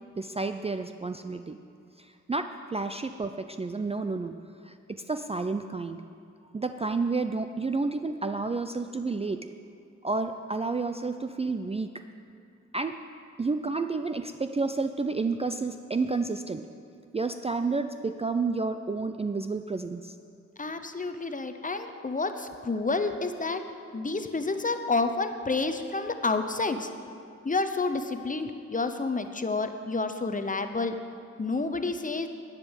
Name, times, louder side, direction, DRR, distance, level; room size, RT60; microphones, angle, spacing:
voice 1, 0.2-1.6 2.0-4.4 4.6-6.0 6.5-9.5 10.0-11.9 12.7-13.0 13.4-16.7 17.1-20.1, right 3 dB, 20° right, 8 dB, 0.4 m, -30 dB
voice 2, 20.6-23.6 23.9-26.9 27.4-31.0 31.4-32.3, left 3 dB, 25° left, 8 dB, 0.8 m, -29 dB
10.5 x 8.3 x 5.2 m, 2.5 s
cardioid pair, 55°, 29 cm